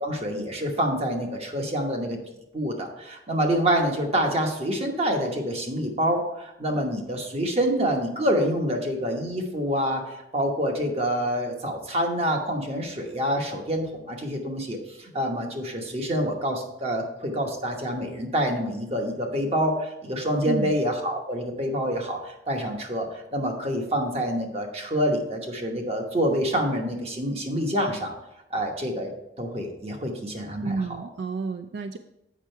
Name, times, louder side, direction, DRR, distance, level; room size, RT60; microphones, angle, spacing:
voice 1, 0.0-2.2 2.5-28.1 28.5-29.1 29.4-30.8, equal, 35° right, 3 dB, 1.1 m, -27 dB
voice 2, 30.6-32.0, right 3 dB, 65° right, 8 dB, 0.3 m, -30 dB
7.4 x 5.5 x 4.5 m, 0.87 s
head